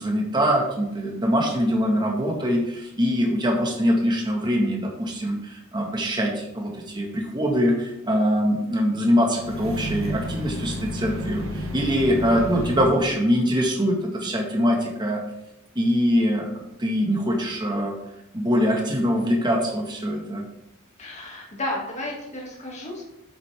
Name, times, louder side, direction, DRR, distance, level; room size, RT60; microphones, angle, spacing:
voice 1, 0.0-15.2 15.7-17.9 18.3-20.4, equal, 20° right, 0 dB, 1.5 m, -23 dB
sound 1, 9.3-13.0, equal, 85° right, 1.7 m, -31 dB
voice 2, 21.0-23.1, left 1 dB, 35° left, -2 dB, 2.2 m, -32 dB
7.9 x 7.8 x 3.5 m, 0.87 s
head